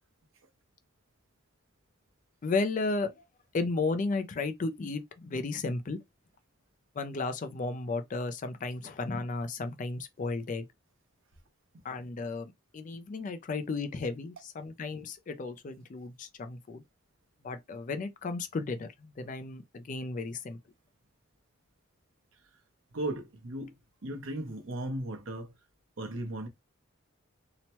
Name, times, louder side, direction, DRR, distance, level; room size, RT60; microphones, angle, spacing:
voice 1, 2.4-3.1 3.5-6.0 7.0-10.7 11.8-16.8 17.4-20.6, left 3 dB, 40° left, 0.4 m, -34 dB
voice 2, 22.9-23.8 24.0-25.5 26.0-26.5, right 1 dB, 65° right, 0.8 m, -36 dB
2.8 x 2.1 x 2.9 m
head